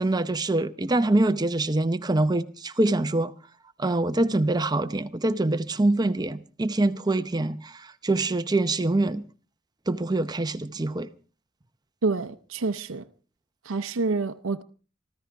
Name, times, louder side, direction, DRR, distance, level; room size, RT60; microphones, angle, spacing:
voice 1, 0.0-3.3 3.8-9.2 9.9-11.1, right 2 dB, 20° right, 0.7 m, -25 dB
voice 2, 12.0-13.1 13.6-14.6, right 3 dB, 80° right, 0.7 m, -27 dB
24.0 x 15.0 x 3.4 m
head